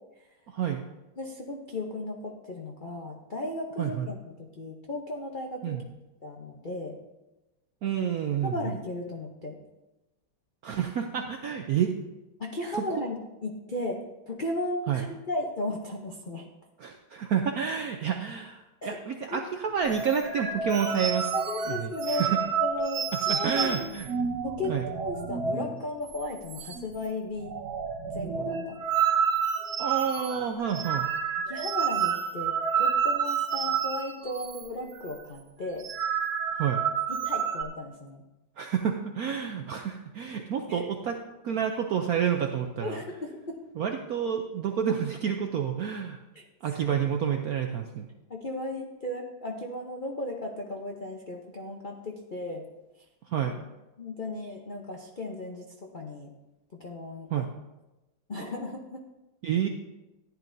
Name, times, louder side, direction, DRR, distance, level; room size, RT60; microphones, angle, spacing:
voice 1, 0.5-0.8 3.8-4.1 5.6-5.8 7.8-8.7 10.6-11.9 14.9-15.0 16.8-21.3 21.7-22.4 23.3-24.1 24.7-24.8 29.8-31.1 36.6-36.8 38.6-43.0 43.8-46.2 46.6-48.1 53.3-53.6 57.3-57.5 59.4-59.7, right 8 dB, 75° right, 4 dB, 0.8 m, -29 dB
voice 2, 1.2-5.8 6.2-7.0 8.4-9.6 12.4-16.5 18.8-19.0 19.3-19.4 21.3-22.3 22.6-23.8 24.4-27.6 28.1-28.8 31.5-35.9 37.1-38.2 40.7-40.9 42.8-43.6 46.3-46.5 46.7-46.8 48.3-52.6 53.4-53.5 54.0-55.7 55.9-56.3 56.8-57.4 58.3-59.1, left 1 dB, 70° left, 1 dB, 0.4 m, -35 dB
sound 1, 19.8-25.8 26.1-26.2 26.5-27.1 27.3-34.7 34.9-35.2 35.6-37.6, right 6 dB, 60° right, 1.2 m, -29 dB
14.5 x 10.5 x 2.7 m, 1.0 s
omnidirectional pair, 2.2 m